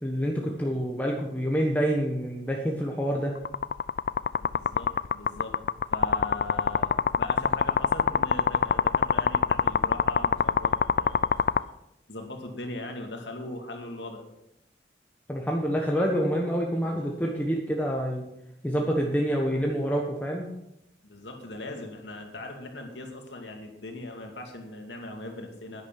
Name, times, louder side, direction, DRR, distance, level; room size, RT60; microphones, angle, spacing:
voice 1, 0.0-3.4 15.3-18.2 18.6-20.5, equal, 10° left, -1 dB, 1.2 m, -27 dB
sound 1, 3.4-11.6, left 6 dB, 55° left, 0.3 m, -23 dB
voice 2, 4.4-5.6 5.9-11.5 12.1-14.2 16.8-17.1 21.0-25.8, left 2 dB, 85° left, 3 dB, 2.4 m, -40 dB
10.5 x 9.7 x 6.0 m, 0.83 s
head